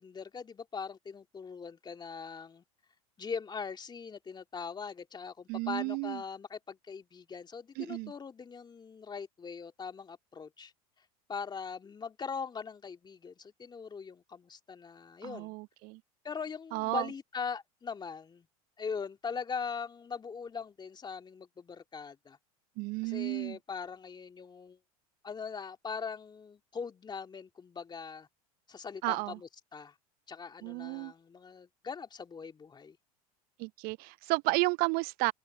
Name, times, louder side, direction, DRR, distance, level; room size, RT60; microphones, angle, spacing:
voice 1, 0.0-2.6 3.2-10.7 11.3-15.6 16.2-18.5 18.8-22.4 23.0-24.8 25.2-28.3 28.7-29.9 30.3-33.0, left 5 dB, 25° left, 2.8 m, -41 dB
voice 2, 5.5-6.2 7.8-8.1 15.2-16.0 16.7-17.1 22.8-23.6 29.0-29.4 30.6-31.1 33.6-35.3, right 26 dB, 50° right, 0.6 m, -32 dB
hypercardioid pair, 80°, 19 cm